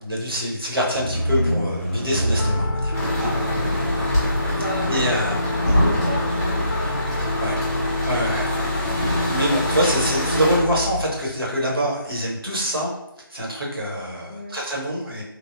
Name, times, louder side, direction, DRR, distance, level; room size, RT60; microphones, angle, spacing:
voice 1, 0.0-3.3 4.9-5.4 7.4-7.7 8.0-8.5 9.2-12.9 13.3-15.2, equal, 75° right, -4 dB, 1.0 m, -25 dB
sound 1, 0.9-12.1, equal, 35° left, 0.6 m, -28 dB
Piano, 2.4-11.0, left 2 dB, 80° left, 0.4 m, -27 dB
sound 2, 2.9-10.6, equal, 10° right, 0.4 m, -27 dB
voice 2, 3.2-3.7 4.5-7.9 14.3-14.6, equal, 50° right, -6 dB, 0.7 m, -36 dB
3.1 x 2.0 x 2.6 m, 0.88 s
figure-of-eight pair, 160°, 12 cm